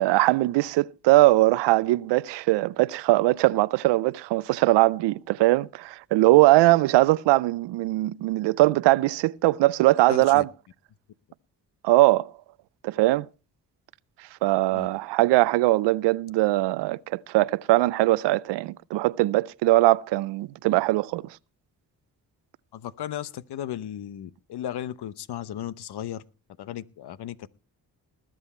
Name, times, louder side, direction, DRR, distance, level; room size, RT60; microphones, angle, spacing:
voice 1, 0.0-10.5 11.8-12.3 12.8-13.3 14.4-21.2, right 18 dB, 85° right, 0.5 m, -21 dB
voice 2, 10.1-10.4 14.7-14.9 22.7-26.2 26.6-27.5, left 10 dB, 70° left, 0.9 m, -35 dB
19.5 x 7.7 x 4.3 m
supercardioid pair, 55°, 41 cm